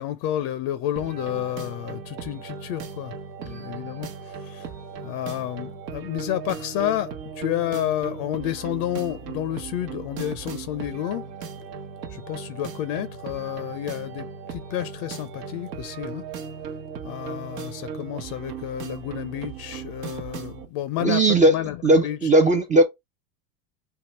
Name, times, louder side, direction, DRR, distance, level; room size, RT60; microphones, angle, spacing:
voice 1, 0.0-3.1 3.5-4.7 5.0-11.2 12.1-16.2 17.0-22.3, left 12 dB, 55° left, 0.6 m, -30 dB
sound 1, 1.0-20.7, right 6 dB, 75° right, 1.0 m, -37 dB
voice 2, 21.0-21.5 21.8-22.8, right 2 dB, 15° right, 0.4 m, -17 dB
3.5 x 2.2 x 4.3 m
hypercardioid pair, 90°, 49 cm